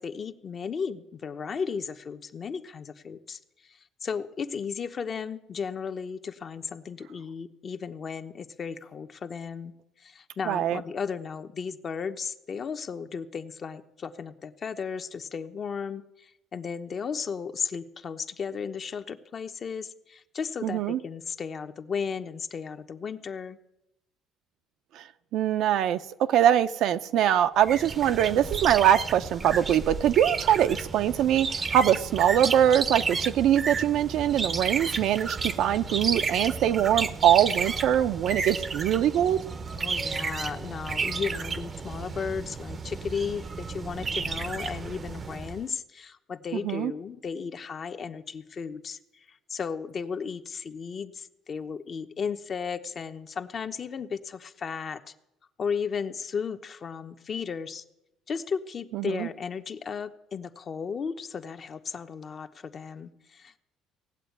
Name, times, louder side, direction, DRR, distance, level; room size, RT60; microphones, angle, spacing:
voice 1, 0.0-9.7 10.0-23.6 39.7-55.1 55.6-57.8 58.3-63.6, left 6 dB, 35° left, 8 dB, 0.9 m, -35 dB
voice 2, 10.5-10.8 20.6-21.0 25.0-25.1 25.3-39.4 46.5-46.9 58.9-59.3, right 10 dB, 65° right, 10 dB, 0.7 m, -23 dB
sound 1, 27.6-45.6, right 4 dB, 30° right, 0.7 m, -32 dB
17.5 x 8.0 x 9.4 m, 0.90 s
cardioid pair, 120°, 0 cm